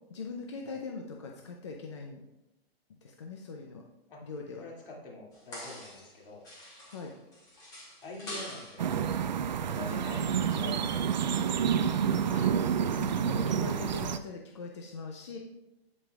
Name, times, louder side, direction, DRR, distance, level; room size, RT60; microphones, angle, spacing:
voice 1, 0.1-2.2 2.9-3.8 4.2-4.6 6.9-7.1 12.0-15.4, left 4 dB, 30° left, 1 dB, 0.5 m, -41 dB
voice 2, 4.6-6.8 8.0-8.9 9.7-11.5, left 2 dB, 60° left, -2 dB, 2.5 m, -45 dB
sound 1, 5.3-6.2 6.4-8.9 11.1-11.6 12.1-12.2, left 1 dB, 10° left, 1.1 m, -45 dB
sound 2, 8.8-14.2, right 7 dB, 45° right, 0.4 m, -29 dB
15.5 x 5.1 x 2.3 m, 0.94 s
hypercardioid pair, 165°, 31 cm